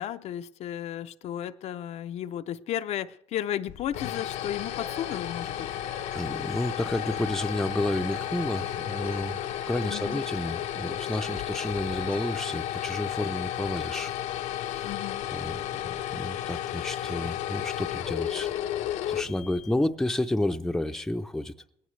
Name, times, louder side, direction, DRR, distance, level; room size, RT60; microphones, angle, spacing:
voice 1, 0.0-5.7 9.9-10.2 14.8-15.3, left 11 dB, 65° left, 0.5 m, -34 dB
sound 1, 3.7-19.9, left 12 dB, 90° left, 0.8 m, -33 dB
sound 2, 4.6-12.6, right 5 dB, 60° right, 1.6 m, -48 dB
voice 2, 6.1-9.4 9.7-14.1 14.4-14.9 15.3-18.5 19.1-21.5, left 1 dB, 5° left, 0.5 m, -31 dB
20.5 x 17.5 x 3.2 m
cardioid pair, 120°, 12 cm